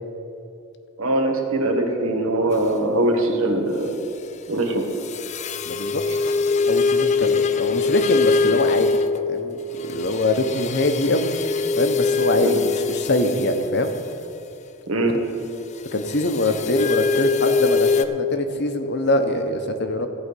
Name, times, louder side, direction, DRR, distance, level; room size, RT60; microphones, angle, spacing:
voice 1, 1.0-4.0 4.5-4.9 12.4-12.6 14.9-15.2, right 1 dB, 80° right, 2 dB, 1.6 m, -22 dB
sound 1, 5.0-9.3 9.9-13.6 16.1-18.1, left 4 dB, 35° left, 0.3 m, -22 dB
voice 2, 5.6-6.0 6.7-8.9 9.3-11.3 11.8-13.9 15.1-15.2 15.9-20.1, left 1 dB, 55° left, 7 dB, 0.9 m, -23 dB
14.5 x 5.0 x 8.3 m, 2.7 s
head